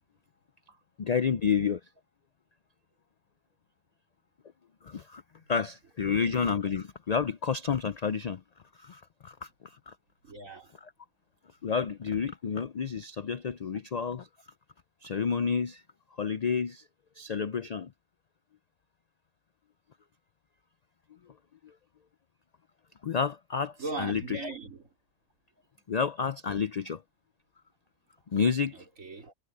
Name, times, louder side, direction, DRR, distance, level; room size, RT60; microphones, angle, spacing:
voice 1, 1.0-1.8 4.8-5.2 5.5-8.4 8.8-9.9 11.6-14.3 15.0-15.8 16.2-16.8 17.2-17.9 23.0-24.4 25.9-27.0 28.3-28.7, left 6 dB, 60° left, 0.4 m, -30 dB
voice 2, 10.2-10.7 11.7-11.9 23.8-24.9 28.7-29.3, right 3 dB, 75° right, 4.1 m, -40 dB
omnidirectional pair, 1.4 m